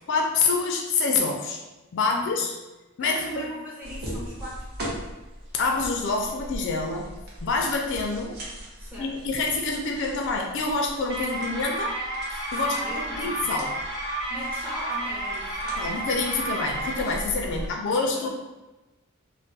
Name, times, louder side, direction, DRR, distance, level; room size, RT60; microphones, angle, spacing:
voice 1, 0.1-1.6 1.9-2.5 3.0-3.4 5.5-7.1 7.4-8.4 9.0-12.0 12.3-13.7 15.8-18.3, left 3 dB, 55° left, 1 dB, 0.3 m, -26 dB
voice 2, 2.0-2.4 3.0-4.7 8.8-9.2 12.5-13.5 14.3-16.0 16.4-16.5 17.5-18.3, equal, 5° right, -7 dB, 0.7 m, -39 dB
sound 1, 3.8-17.7, equal, 45° right, 0.7 m, -40 dB
sound 2, 11.1-17.0, right 1 dB, 70° right, 1.4 m, -31 dB
2.3 x 2.0 x 3.8 m, 1.1 s
head